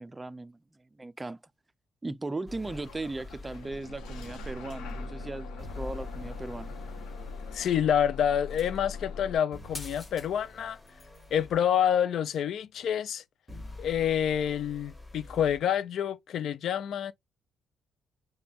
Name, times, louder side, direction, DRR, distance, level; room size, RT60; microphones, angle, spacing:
voice 1, 0.0-1.4 2.0-6.7, right 2 dB, 20° right, 0.4 m, -38 dB
sound 1, 2.5-3.7 5.6-7.7 9.5-11.6 13.5-15.6, left 3 dB, 15° left, 1.4 m, -46 dB
Bus / Engine starting, 2.6-9.4, left 3 dB, 90° left, 0.8 m, -41 dB
voice 2, 7.5-10.8 11.3-13.2 13.8-17.1, left 9 dB, 70° left, 0.3 m, -28 dB
sound 2, 8.5-8.9 9.7-10.3 10.6-11.3 12.3-12.4, left 3 dB, 35° left, 1.0 m, -45 dB
5.0 x 2.2 x 2.9 m
cardioid pair, 90°, 0 cm